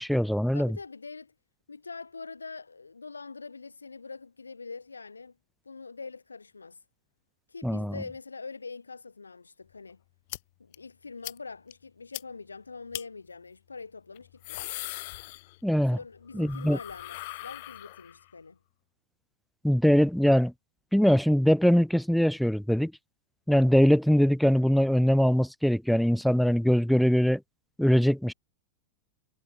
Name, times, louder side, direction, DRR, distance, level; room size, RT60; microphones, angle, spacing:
voice 1, 0.0-0.8 7.6-7.9 15.6-16.0 16.3-16.8 19.6-20.5 20.9-22.9 23.5-27.4 27.8-28.3, equal, ahead, 0.4 m, -22 dB
voice 2, 0.5-1.3 1.7-5.3 5.7-6.8 7.5-10.0 10.6-14.7 15.9-18.6, left 4 dB, 75° left, 3.5 m, -44 dB
sound 1, 10.3-10.4 10.7-10.8 11.2-11.4 11.7-11.8 12.1-12.2 12.9-13.0 14.2-15.8 16.1-18.3, left 20 dB, 50° left, 2.6 m, -40 dB
figure-of-eight pair, 90°, 0 cm